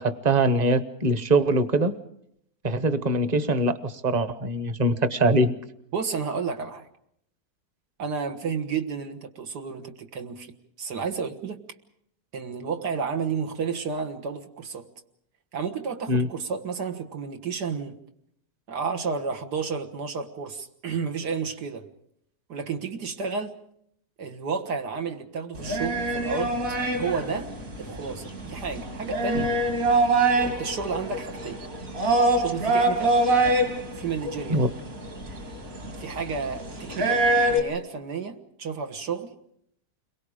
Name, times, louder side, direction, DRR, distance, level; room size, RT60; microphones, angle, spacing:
voice 1, 0.0-1.9 2.6-5.5 16.1-16.3 34.5-34.7, right 1 dB, 30° right, 1.1 m, -23 dB
voice 2, 5.9-6.9 8.0-10.5 10.8-11.6 12.3-14.9 15.5-18.0 18.7-21.9 22.5-23.5 24.2-26.6 26.9-29.6 30.4-31.6 32.4-33.2 33.9-34.6 36.0-39.3, right 5 dB, 90° right, 2.1 m, -31 dB
sound 1, 25.6-37.6, right 2 dB, 55° right, 3.7 m, -25 dB
30.0 x 22.5 x 5.0 m
omnidirectional pair, 1.7 m